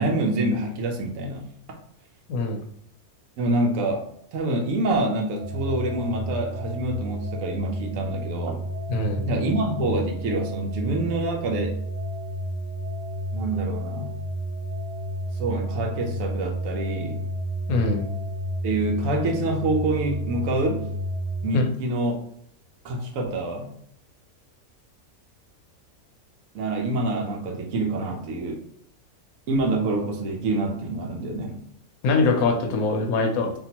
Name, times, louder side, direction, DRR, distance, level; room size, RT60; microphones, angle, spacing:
voice 1, 0.0-1.4 3.4-4.1 4.3-8.6 9.2-11.8 13.3-14.1 15.3-17.2 18.6-20.9 21.4-22.1 22.8-23.7 26.5-28.6 29.5-31.6, right 2 dB, 75° right, 1 dB, 1.0 m, -26 dB
voice 2, 2.3-2.6 8.9-9.2 17.7-18.0 21.5-21.6 32.0-33.5, left 3 dB, 85° left, 4 dB, 1.0 m, -22 dB
sound 1, 5.4-21.5, equal, 40° right, 0.6 m, -31 dB
3.6 x 2.3 x 2.8 m, 0.68 s
omnidirectional pair, 1.5 m